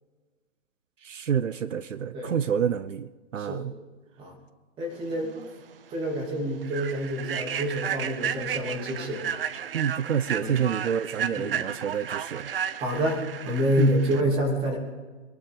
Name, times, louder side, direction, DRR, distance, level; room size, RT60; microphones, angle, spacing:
voice 1, 1.0-3.7 9.7-12.6 13.8-13.9, right 8 dB, 80° right, 15 dB, 0.9 m, -28 dB
voice 2, 3.4-3.7 4.2-4.3 4.8-5.3 5.9-9.2 10.4-10.5 11.4-11.6 12.8-14.8, equal, 15° right, 1 dB, 2.7 m, -27 dB
Human voice / Train, 5.3-5.5 5.9-6.1 6.6-14.2, right 9 dB, 50° right, 0.9 m, -33 dB
25.0 x 12.0 x 3.8 m, 1.3 s
hypercardioid pair, 155°, 37 cm